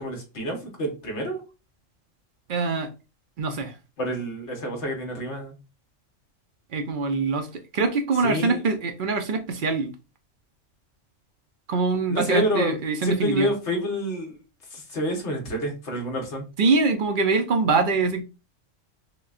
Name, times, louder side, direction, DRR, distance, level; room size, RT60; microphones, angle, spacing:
voice 1, 0.0-1.4 4.0-5.5 8.2-8.6 12.1-12.8 13.0-14.4 14.7-16.5, equal, 60° left, 1 dB, 1.4 m, -28 dB
voice 2, 2.5-2.9 3.4-3.8 6.7-9.9 11.7-13.5 16.6-18.2, right 4 dB, 55° right, 6 dB, 0.6 m, -24 dB
6.0 x 2.2 x 2.4 m, 0.30 s
omnidirectional pair, 1.3 m